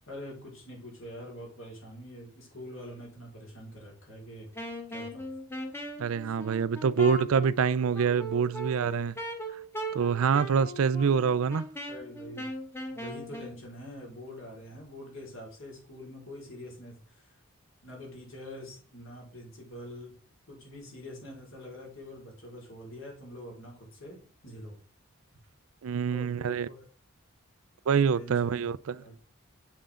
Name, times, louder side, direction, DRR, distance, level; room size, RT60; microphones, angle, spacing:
voice 1, 0.1-4.5 4.9-5.3 11.9-12.5 12.9-17.3 17.8-20.1 20.5-23.7 24.0-24.7 26.1-26.8 28.1-28.7 29.0-29.1, left 1 dB, 70° left, 4.4 m, -45 dB
Wind instrument woodwind instrument, 4.5-13.6, right 1 dB, 10° left, 1.1 m, -39 dB
voice 2, 6.0-9.1 9.9-11.7 25.8-26.7 27.9-28.9, right 6 dB, 75° right, 0.4 m, -26 dB
7.8 x 7.4 x 3.7 m
head